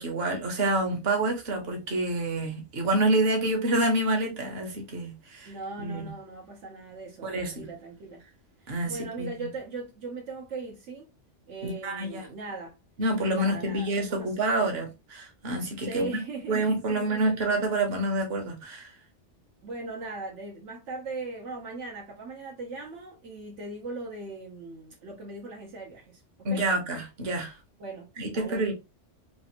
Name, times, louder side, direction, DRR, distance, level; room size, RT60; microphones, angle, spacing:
voice 1, 0.0-5.5 5.8-6.1 7.2-7.7 8.7-9.5 11.6-12.3 13.0-16.1 16.5-18.9 26.4-27.6 28.2-28.7, right 2 dB, 55° right, 1.2 m, -28 dB
voice 2, 5.4-8.2 8.6-11.1 11.5-12.8 13.3-14.4 15.8-17.4 19.6-26.7 27.8-28.7, right 3 dB, 75° right, 1.1 m, -39 dB
3.3 x 2.5 x 2.8 m
omnidirectional pair, 1.2 m